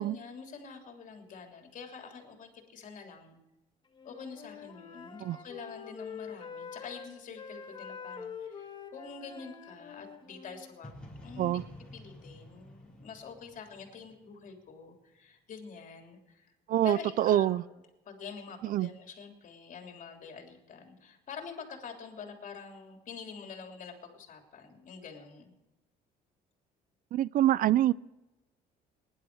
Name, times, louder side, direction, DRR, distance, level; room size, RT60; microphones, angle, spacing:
voice 1, 0.0-3.4 4.0-10.9 11.2-11.6 11.9-16.5 16.8-17.8 18.0-25.5, left 5 dB, 50° left, 3.2 m, -46 dB
Wind instrument woodwind instrument, 3.9-10.8, left 6 dB, 25° left, 1.6 m, -45 dB
sound 1, 10.8-14.7, left 1 dB, 5° left, 5.1 m, -50 dB
voice 2, 16.7-17.6 18.6-18.9 27.1-27.9, right 13 dB, 55° right, 0.4 m, -25 dB
19.0 x 11.0 x 4.8 m
cardioid pair, 110°, 17 cm